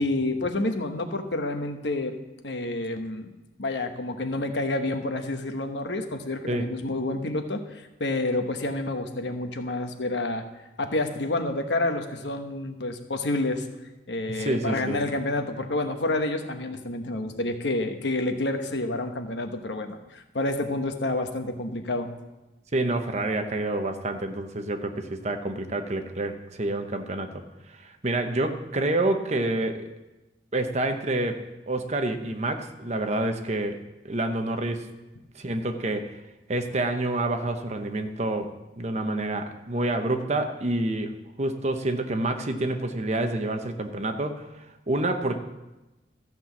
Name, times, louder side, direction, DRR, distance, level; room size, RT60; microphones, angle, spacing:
voice 1, 0.0-2.2 2.4-3.3 3.6-10.4 10.8-13.7 14.1-22.1, left 2 dB, 85° left, 6 dB, 1.1 m, -29 dB
voice 2, 14.4-15.0 22.7-27.4 27.7-29.9 30.5-33.8 34.0-34.9 35.3-36.2 36.5-44.5 44.9-45.4, right 2 dB, 40° right, 6 dB, 0.9 m, -28 dB
14.0 x 6.0 x 7.2 m, 1.0 s
head